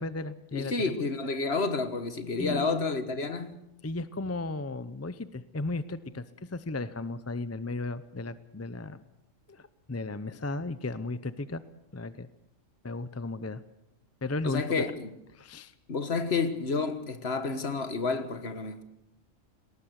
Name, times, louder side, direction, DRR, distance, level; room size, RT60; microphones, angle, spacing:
voice 1, 0.0-0.9 2.4-2.8 3.8-9.0 9.5-11.6 11.9-12.3 12.8-13.6 14.2-14.8 15.3-15.7, left 2 dB, 15° left, 0.5 m, -35 dB
voice 2, 0.5-3.6 14.4-15.1 15.9-18.8, left 4 dB, 50° left, 1.7 m, -30 dB
20.0 x 18.5 x 8.1 m
omnidirectional pair, 1.4 m